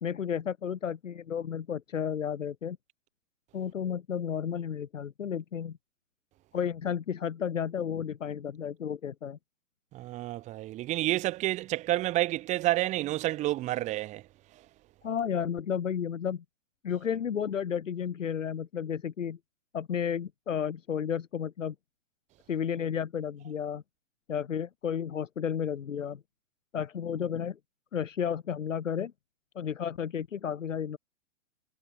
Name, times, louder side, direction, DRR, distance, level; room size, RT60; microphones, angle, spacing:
voice 1, 0.0-2.8 3.5-5.8 6.5-9.4 15.0-16.4 16.8-19.4 19.7-21.7 22.5-23.8 24.3-26.2 26.7-27.6 27.9-29.1 29.6-31.0, left 8 dB, 75° left, 2.0 m, -32 dB
voice 2, 9.9-14.2, right 16 dB, 20° right, 0.9 m, -29 dB
hypercardioid pair, 125°, 38 cm